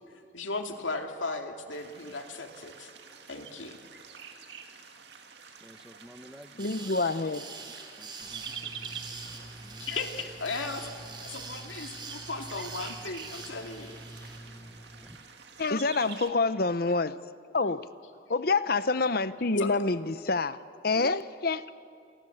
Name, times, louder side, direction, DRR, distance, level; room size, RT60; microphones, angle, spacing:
voice 1, 0.3-2.9 3.3-3.8 9.8-14.4 19.6-19.7, left 3 dB, 85° left, 2.5 m, -36 dB
sound 1, 1.7-16.3, right 7 dB, 60° right, 2.1 m, -47 dB
voice 2, 5.6-7.0 7.6-9.2 9.6-9.9 13.8-14.0 15.0-15.2, equal, 5° right, 1.2 m, -53 dB
voice 3, 6.6-7.6 15.6-17.2 17.5-17.9 18.3-20.6 20.8-21.7, left 3 dB, 50° left, 0.8 m, -27 dB
sound 2, 6.6-14.4, right 4 dB, 25° right, 3.1 m, -45 dB
sound 3, 8.2-15.1, right 1 dB, 20° left, 3.1 m, -48 dB
28.0 x 24.0 x 8.0 m
head